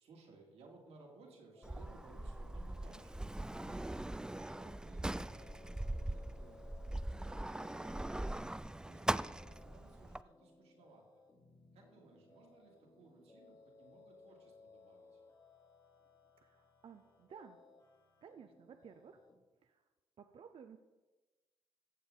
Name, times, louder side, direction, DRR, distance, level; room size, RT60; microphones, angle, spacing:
voice 1, 0.0-3.3 3.6-6.6 7.2-8.5 8.8-11.2 11.7-15.2, right 3 dB, 80° right, 0 dB, 2.5 m, -61 dB
sound 1, 1.5-19.4, left 3 dB, 45° left, 3.0 m, -64 dB
Sliding door, 1.6-10.2, right 1 dB, 5° right, 0.3 m, -41 dB
voice 2, 16.4-17.6 18.2-19.2 19.6-19.9 20.2-20.8, right 7 dB, 60° right, 7 dB, 0.7 m, -56 dB
15.0 x 7.0 x 3.9 m, 1.2 s
supercardioid pair, 55°, 11 cm